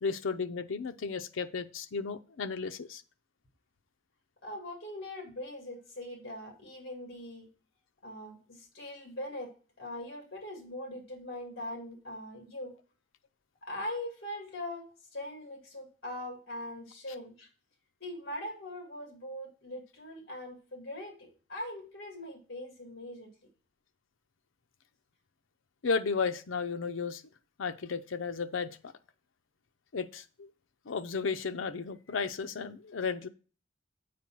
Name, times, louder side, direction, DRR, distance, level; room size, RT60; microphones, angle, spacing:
voice 1, 0.0-3.0 25.8-27.2 27.6-28.9 29.9-30.5 30.9-33.3, left 5 dB, 85° left, 10 dB, 0.6 m, -34 dB
voice 2, 4.4-7.5 8.0-9.5 9.8-12.7 13.6-14.8 15.1-17.5 18.0-23.3, left 1 dB, 55° left, 2 dB, 2.2 m, -41 dB
7.6 x 4.6 x 5.9 m, 0.37 s
head